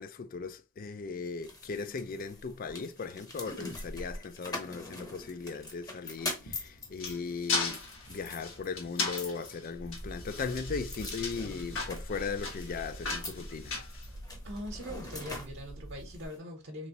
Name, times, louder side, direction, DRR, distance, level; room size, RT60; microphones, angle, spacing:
voice 1, 0.0-7.8 8.1-13.7, left 5 dB, 45° left, 0.4 m, -38 dB
sound 1, 1.4-16.4, left 2 dB, 20° left, 0.8 m, -44 dB
sound 2, 6.4-14.6, left 4 dB, 70° left, 1.3 m, -37 dB
sound 3, 9.7-16.3, right 1 dB, 20° right, 0.5 m, -45 dB
voice 2, 14.4-16.9, equal, 60° right, 0.9 m, -41 dB
3.4 x 3.0 x 2.9 m
head